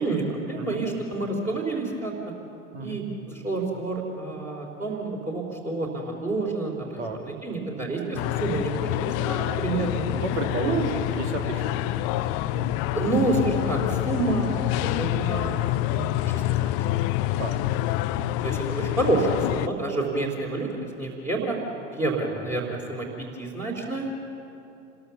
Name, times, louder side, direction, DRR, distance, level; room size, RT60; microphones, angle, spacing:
voice 1, 0.0-2.1 2.8-7.0 7.2-10.2 10.6-10.9 12.9-14.5 14.8-15.6 15.8-16.7 18.4-20.7 21.0-21.6 21.9-23.1 23.4-24.1, right 2 dB, 20° right, -3 dB, 3.5 m, -28 dB
voice 2, 7.0-7.3 7.8-8.0 9.7-10.8 11.1-12.8 14.7-15.0 17.4-17.7 18.1-18.4 22.3-22.8, right 3 dB, 65° right, 3 dB, 2.6 m, -35 dB
sound 1, 8.1-19.7, left 15 dB, 40° left, 0.6 m, -27 dB
28.0 x 21.0 x 7.0 m, 2.9 s
figure-of-eight pair, 80°, 38 cm